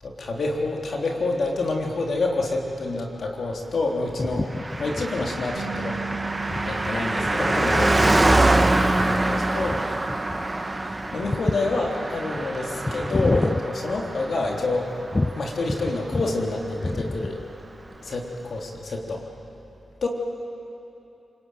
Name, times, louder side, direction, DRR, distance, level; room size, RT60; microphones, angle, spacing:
voice 1, 0.0-4.5 4.8-6.0 6.4-9.8 11.1-14.9 15.4-17.4 18.0-19.2 20.0-20.1, left 2 dB, 65° left, 0 dB, 3.6 m, -28 dB
sound 1, 4.2-14.6 15.1-16.5 16.7-17.6, left 2 dB, 30° left, 0.7 m, -31 dB
Car passing by, 4.5-16.4 16.6-16.7, right 2 dB, 25° right, 1.6 m, -25 dB
Bass guitar, 5.6-11.8, right 6 dB, 85° right, 1.1 m, -39 dB
28.0 x 20.5 x 9.3 m, 2.9 s
supercardioid pair, 45°, 0 cm